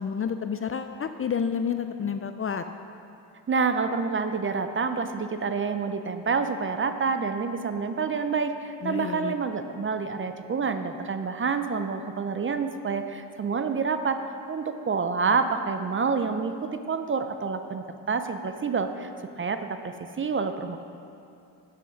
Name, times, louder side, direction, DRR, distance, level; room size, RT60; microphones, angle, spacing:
voice 1, 0.0-2.6 8.8-9.3, left 7 dB, 35° left, 8 dB, 0.4 m, -29 dB
voice 2, 3.5-14.2 14.5-19.1 19.4-20.8, right 5 dB, 30° right, 8 dB, 0.6 m, -28 dB
8.1 x 7.9 x 5.8 m, 2.6 s
cardioid pair, 90°, 42 cm